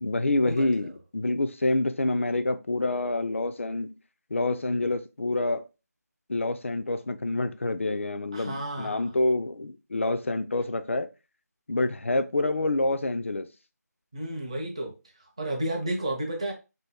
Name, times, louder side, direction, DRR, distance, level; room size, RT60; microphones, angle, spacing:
voice 1, 0.0-3.9 4.3-5.6 6.3-11.1 11.7-13.5, left 2 dB, 45° left, 0.3 m, -27 dB
voice 2, 8.3-9.2 14.1-14.9 15.4-16.5, right 1 dB, 20° right, 0.5 m, -32 dB
2.7 x 2.5 x 3.4 m
figure-of-eight pair, 165°, 9 cm